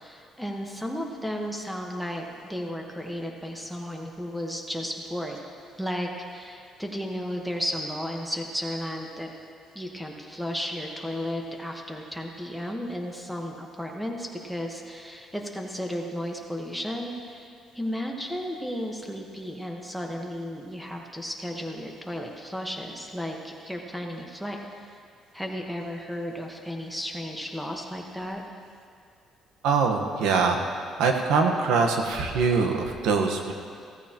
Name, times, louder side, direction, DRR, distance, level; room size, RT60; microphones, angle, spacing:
voice 1, 0.0-5.4 5.8-9.3 9.7-24.6 25.3-28.4, equal, ahead, 1 dB, 1.3 m, -34 dB
voice 2, 29.6-30.6 31.0-33.5, right 4 dB, 85° right, 3 dB, 1.2 m, -23 dB
16.0 x 14.5 x 3.0 m, 2.3 s
cardioid pair, 130°, 0 cm